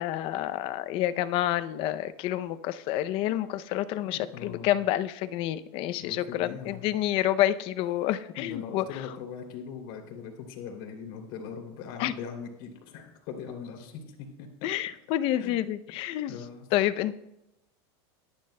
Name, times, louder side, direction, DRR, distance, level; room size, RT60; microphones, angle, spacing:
voice 1, 0.0-9.0 12.0-12.1 14.6-16.4 16.7-17.1, left 13 dB, 45° left, 14 dB, 0.5 m, -28 dB
voice 2, 4.1-4.7 6.0-6.9 8.4-14.7 15.4-15.6 16.3-16.7, left 7 dB, 60° left, 3 dB, 2.9 m, -41 dB
24.0 x 10.5 x 2.2 m, 0.90 s
supercardioid pair, 150°, 13 cm